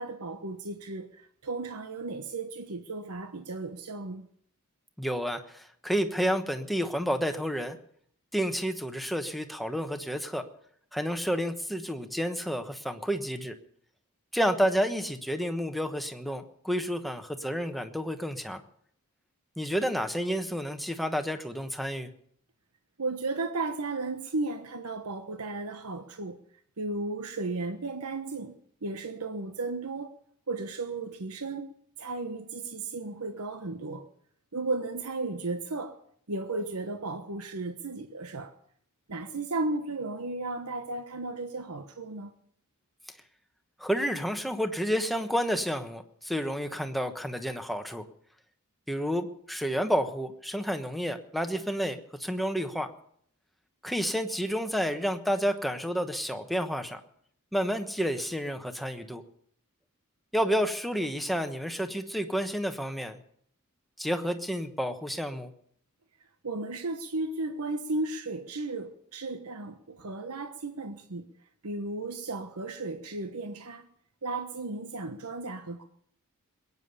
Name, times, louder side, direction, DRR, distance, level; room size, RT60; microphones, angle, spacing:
voice 1, 0.0-4.2 23.0-26.4 26.8-28.5 28.8-30.1 30.5-31.7 32.0-34.0 34.5-36.0 36.3-38.5 39.1-42.3 66.4-71.3 71.6-73.9 74.2-75.8, right 3 dB, 85° right, 1.1 m, -34 dB
voice 2, 5.0-7.8 8.3-10.4 10.9-13.5 14.3-18.6 19.6-22.1 43.8-48.0 48.9-52.9 53.8-57.0 57.5-59.2 60.3-63.2 64.0-65.5, equal, ahead, 1.1 m, -30 dB
21.0 x 9.6 x 6.9 m
head